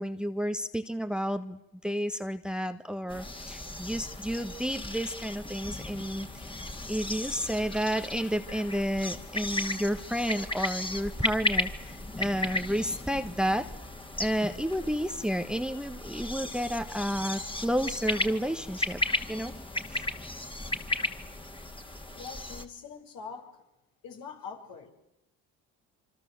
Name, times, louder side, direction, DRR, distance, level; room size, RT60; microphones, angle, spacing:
voice 1, 0.0-6.3 6.9-13.7 14.2-19.0 19.3-19.5 19.9-20.0, equal, ahead, 10 dB, 1.4 m, -31 dB
sound 1, 3.1-22.6, left 1 dB, 15° left, 2.6 m, -35 dB
voice 2, 22.1-23.6 24.0-24.9, left 6 dB, 70° left, 3 dB, 5.6 m, -43 dB
27.0 x 24.5 x 7.9 m, 0.89 s
supercardioid pair, 75°, 36 cm